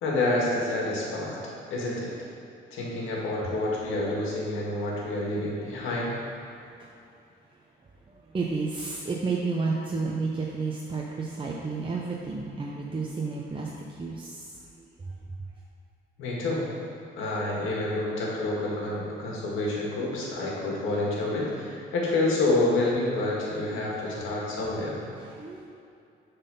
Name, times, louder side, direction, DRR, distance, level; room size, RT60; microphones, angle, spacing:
voice 1, 0.0-1.4 1.7-2.1 2.7-6.2 16.2-16.6 17.2-25.0, left 2 dB, 90° left, -4 dB, 1.7 m, -28 dB
voice 2, 8.1-14.5 24.2-24.4 25.2-25.7, right 4 dB, 25° right, -2 dB, 0.7 m, -31 dB
7.3 x 4.1 x 5.6 m, 2.6 s
cardioid pair, 90°, 20 cm